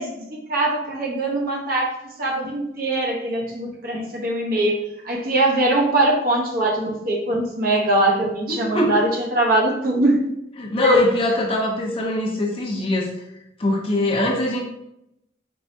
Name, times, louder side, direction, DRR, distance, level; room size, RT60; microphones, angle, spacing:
voice 1, 0.0-10.3 10.8-11.1, right 1 dB, 55° right, -1 dB, 0.8 m, -22 dB
voice 2, 8.5-9.0 10.6-13.1 13.6-14.6, left 1 dB, 30° left, -2 dB, 0.6 m, -22 dB
4.6 x 3.1 x 2.6 m, 0.81 s
head